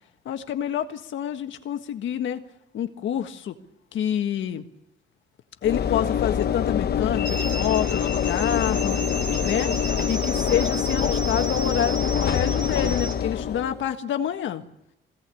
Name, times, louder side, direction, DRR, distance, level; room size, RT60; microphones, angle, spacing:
voice 1, 0.3-2.4 2.7-3.6 3.9-4.6 5.6-9.0 9.4-9.7 10.1-14.6, left 9 dB, 75° left, 7 dB, 1.6 m, -27 dB
Train / Engine / Alarm, 5.6-13.9, left 8 dB, 55° left, 0.9 m, -25 dB
sound 1, 7.2-13.2, right 3 dB, 65° right, 4.0 m, -34 dB
21.5 x 17.0 x 8.4 m, 0.86 s
cardioid pair, 90°, 20 cm